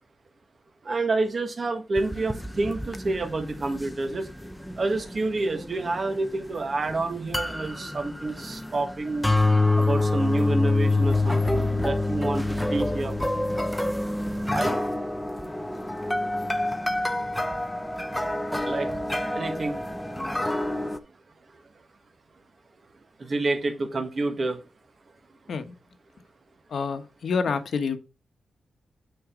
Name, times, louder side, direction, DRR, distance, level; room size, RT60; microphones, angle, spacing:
voice 1, 0.8-4.3 4.8-9.3 9.8-13.1 14.5-14.8 18.6-18.9 19.3-19.8 23.2-24.6, right 2 dB, 35° right, 1.6 m, -28 dB
Pre-Natal Piano Pizzicato, 2.0-21.0, left 2 dB, 5° left, 0.7 m, -27 dB
voice 2, 26.7-28.0, left 5 dB, 60° left, 1.2 m, -27 dB
9.2 x 4.6 x 3.8 m
wide cardioid pair, 140°, 0 cm